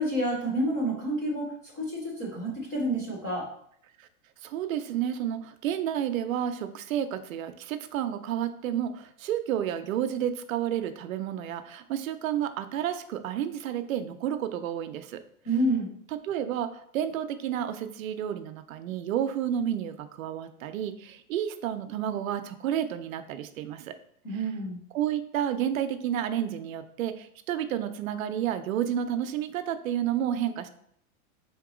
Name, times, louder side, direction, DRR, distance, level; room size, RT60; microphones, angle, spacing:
voice 1, 0.0-3.5 15.4-15.9 24.2-24.8, right 1 dB, 15° left, -5 dB, 0.3 m, -29 dB
voice 2, 4.4-15.2 16.2-23.9 24.9-30.7, right 10 dB, 65° right, 10 dB, 0.6 m, -31 dB
3.8 x 2.9 x 4.8 m, 0.68 s
supercardioid pair, 170°, 44 cm